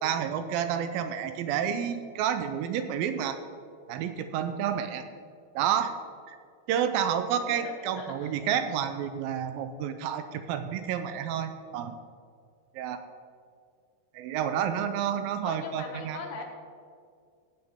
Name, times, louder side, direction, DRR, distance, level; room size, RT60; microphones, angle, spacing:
voice 1, 0.0-3.4 3.9-5.1 5.6-5.9 6.3-6.4 6.7-12.0 12.8-13.0 14.1-16.2, right 9 dB, 80° right, 9 dB, 2.3 m, -30 dB
voice 2, 7.3-8.4 15.4-16.4, left 4 dB, 85° left, 3 dB, 3.1 m, -41 dB
15.5 x 9.0 x 3.6 m, 2.1 s
omnidirectional pair, 4.4 m